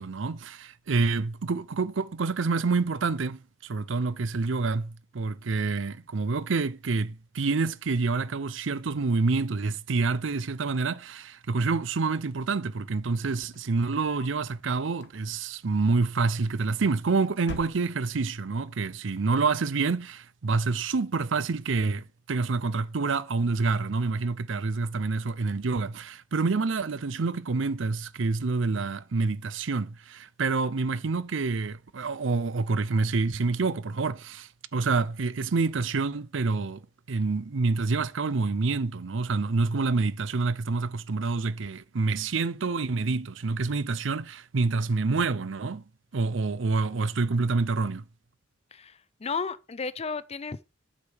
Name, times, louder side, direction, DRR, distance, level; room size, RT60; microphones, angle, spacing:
voice 1, 0.0-36.8 37.1-45.8 46.1-48.0, right 4 dB, 70° right, 0.6 m, -27 dB
sound 1, 13.3-14.4 14.9-15.6 16.5-17.0 17.4-18.3, left 2 dB, 60° left, 1.4 m, -45 dB
voice 2, 48.7-50.7, left 5 dB, 30° left, 0.5 m, -34 dB
8.4 x 4.9 x 6.4 m
head